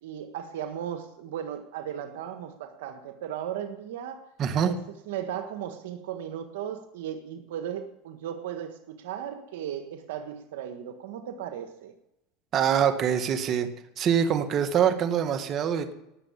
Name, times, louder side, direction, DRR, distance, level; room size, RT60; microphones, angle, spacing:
voice 1, 0.0-4.3 4.6-11.9, right 9 dB, 80° right, 8 dB, 1.5 m, -36 dB
voice 2, 4.4-4.7 12.5-13.7 14.0-15.9, right 8 dB, 40° right, 8 dB, 1.8 m, -24 dB
19.0 x 7.4 x 7.2 m, 0.86 s
supercardioid pair, 115°, 0 cm